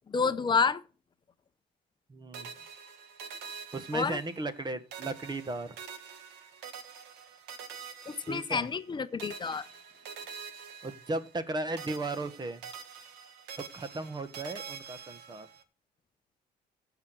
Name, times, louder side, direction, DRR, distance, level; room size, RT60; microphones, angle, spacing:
voice 1, 0.1-0.8 3.9-4.2 8.1-9.6, left 5 dB, 25° left, 0.8 m, -29 dB
voice 2, 2.1-2.5 3.7-5.8 8.3-8.7 10.8-12.6 13.6-15.5, right 2 dB, 25° right, 1.4 m, -36 dB
sound 1, 2.3-4.6 4.9-8.9 9.2-11.5 11.8-15.6, right 6 dB, 90° right, 1.9 m, -46 dB
15.0 x 6.0 x 6.2 m
cardioid pair, 110°, 17 cm